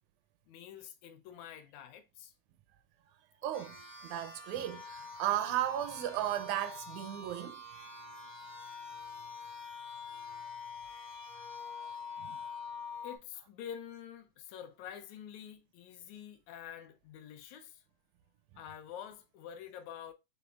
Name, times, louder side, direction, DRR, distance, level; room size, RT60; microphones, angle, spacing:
voice 1, 0.5-2.3 11.7-11.9 13.0-17.8 18.6-20.1, left 9 dB, 80° left, 1.8 m, -47 dB
voice 2, 3.4-3.8 4.0-7.6 12.2-12.4, right 12 dB, 80° right, 1.9 m, -35 dB
sound 1, 3.5-13.2, left 4 dB, 60° left, 0.7 m, -46 dB
6.0 x 3.3 x 2.3 m
omnidirectional pair, 3.4 m